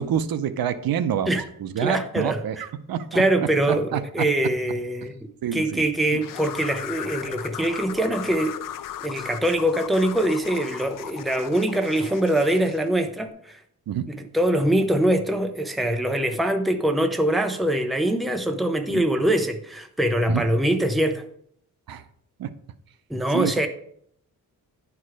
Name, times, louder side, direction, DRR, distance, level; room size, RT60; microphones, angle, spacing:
voice 1, 0.0-3.2 3.7-4.0 5.4-5.8 13.9-14.1 18.9-19.0 20.3-20.4 21.9-22.0 22.4-22.5 23.3-23.7, right 9 dB, 80° right, 11 dB, 0.7 m, -27 dB
voice 2, 1.8-2.4 3.1-5.2 5.5-8.5 9.0-13.6 14.1-21.2 23.1-23.7, right 1 dB, ahead, 6 dB, 0.5 m, -23 dB
sound 1, 6.2-12.9, left 11 dB, 65° left, 0.5 m, -37 dB
10.0 x 4.8 x 4.8 m, 0.69 s
wide cardioid pair, 175°, 35 cm